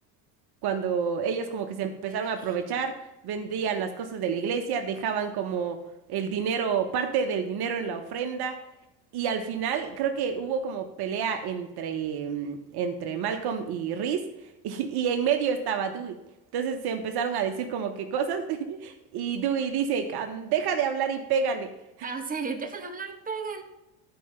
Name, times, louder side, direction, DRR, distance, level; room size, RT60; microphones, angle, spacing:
voice 1, 0.6-5.8 6.1-8.6 9.1-14.2 14.6-16.2 16.5-21.7, right 7 dB, 55° right, 6 dB, 1.0 m, -29 dB
voice 2, 1.7-2.5 22.0-23.6, right 5 dB, 20° right, 4 dB, 1.3 m, -35 dB
11.0 x 4.8 x 5.5 m, 0.94 s
supercardioid pair, 90°, 46 cm